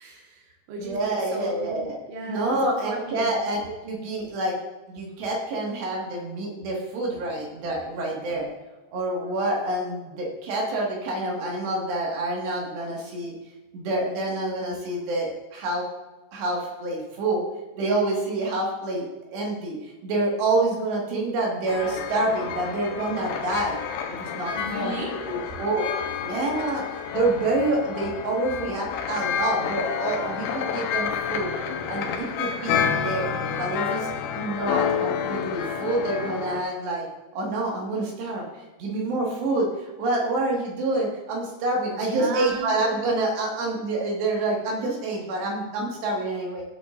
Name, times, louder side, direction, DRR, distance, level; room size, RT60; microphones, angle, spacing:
voice 1, 0.0-3.3 24.5-25.1 41.9-42.7, right 2 dB, 85° right, -1 dB, 4.1 m, -34 dB
voice 2, 0.8-2.0 2.3-4.6 4.9-8.5 8.9-13.3 13.7-15.9 16.3-17.4 17.8-19.0 19.3-23.8 24.1-24.9 25.3-25.9 26.2-26.8 27.1-31.5 31.9-33.3 33.6-37.1 37.3-38.5 38.8-46.6, right 2 dB, 70° right, -2 dB, 4.1 m, -27 dB
sound 1, 21.7-36.6, left 7 dB, 90° left, 3.5 m, -29 dB
16.0 x 8.8 x 2.6 m, 1.1 s
omnidirectional pair, 5.3 m